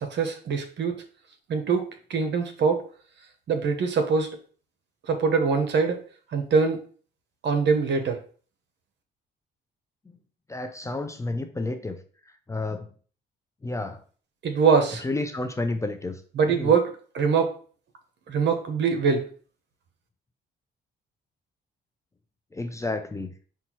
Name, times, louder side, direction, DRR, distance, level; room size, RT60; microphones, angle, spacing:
voice 1, 0.1-1.0 1.5-2.8 3.5-4.3 5.1-6.0 6.3-6.8 7.4-8.2 14.4-15.0 16.4-17.6 18.3-19.3, right 5 dB, 60° right, 6 dB, 0.8 m, -23 dB
voice 2, 10.5-12.0 12.5-12.9 13.6-14.0 15.0-16.1 16.5-16.7 22.5-23.3, left 2 dB, 15° left, 7 dB, 0.4 m, -30 dB
5.3 x 2.4 x 3.0 m, 0.41 s
cardioid pair, 90°, 20 cm